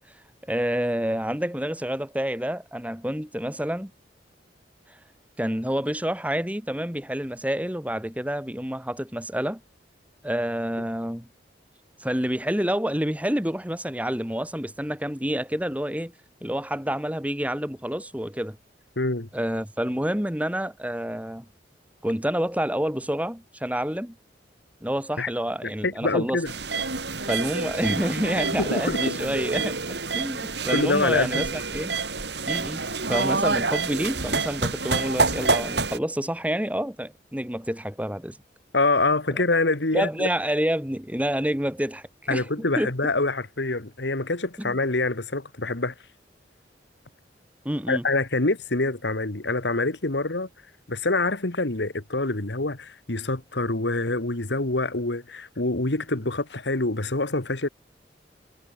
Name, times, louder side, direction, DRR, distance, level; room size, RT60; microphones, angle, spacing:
voice 1, 0.5-3.9 5.4-9.6 10.2-11.3 12.0-16.1 16.4-18.6 19.3-21.5 22.0-24.1 24.8-26.4 27.3-29.8 30.1-31.9 32.4-38.4 39.3-39.4 39.9-42.9 44.6-44.8 47.6-48.1, equal, 10° right, 2.8 m, -28 dB
voice 2, 19.0-19.3 25.2-25.3 25.6-26.5 28.6-29.2 30.7-31.5 38.7-40.3 42.3-45.9 47.9-50.5 50.9-57.7, left 2 dB, 75° left, 1.9 m, -25 dB
sound 1, 26.4-36.0, right 4 dB, 70° right, 6.4 m, -27 dB
head